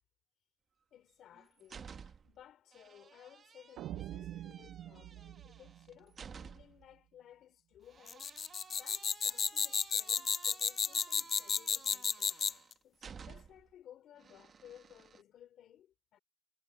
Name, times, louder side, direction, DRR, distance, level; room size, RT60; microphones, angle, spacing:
voice 1, 0.9-16.2, left 11 dB, 75° left, 3.3 m, -59 dB
sound 1, 1.1-2.4 2.7-6.9 7.9-13.7 14.2-15.2, right 6 dB, 50° right, 1.6 m, -54 dB
sound 2, 3.8-6.9, right 13 dB, 85° right, 0.5 m, -46 dB
sound 3, 8.1-12.7, left 7 dB, 50° left, 0.3 m, -32 dB
cardioid pair, 90°, 0 cm